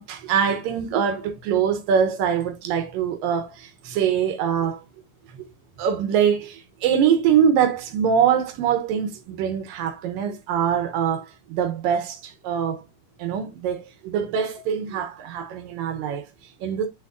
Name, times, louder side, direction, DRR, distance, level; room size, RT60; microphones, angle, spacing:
voice 1, 0.0-4.8 5.3-5.4 5.8-12.8 13.2-16.9, right 8 dB, 75° right, 2.3 m, -23 dB
8.5 x 6.2 x 2.5 m
omnidirectional pair, 4.5 m